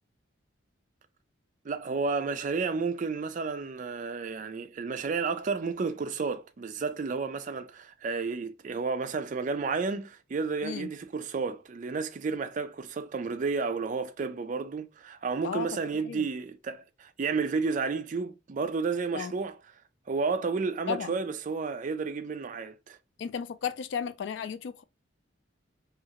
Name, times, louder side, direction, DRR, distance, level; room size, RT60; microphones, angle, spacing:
voice 1, 1.6-19.6 20.1-23.0, right 4 dB, 40° right, 0.4 m, -31 dB
voice 2, 23.2-24.8, left 7 dB, 65° left, 0.3 m, -34 dB
2.8 x 2.4 x 2.8 m
head